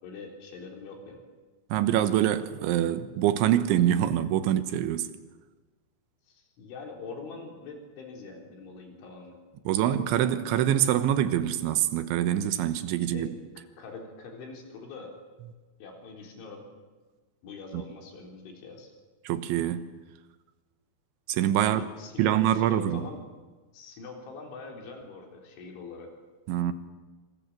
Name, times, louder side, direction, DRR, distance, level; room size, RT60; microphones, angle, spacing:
voice 1, 0.0-1.2 6.3-9.4 13.1-13.3 13.8-15.1 15.8-16.6 17.4-18.9 21.7-23.2 23.7-26.1, left 4 dB, 85° left, 6.3 m, -43 dB
voice 2, 1.7-5.1 9.7-13.3 17.7-17.8 19.3-19.9 21.3-21.9 22.2-23.1 26.5-26.7, right 11 dB, 90° right, 3.6 m, -25 dB
27.0 x 27.0 x 7.4 m
omnidirectional pair, 5.3 m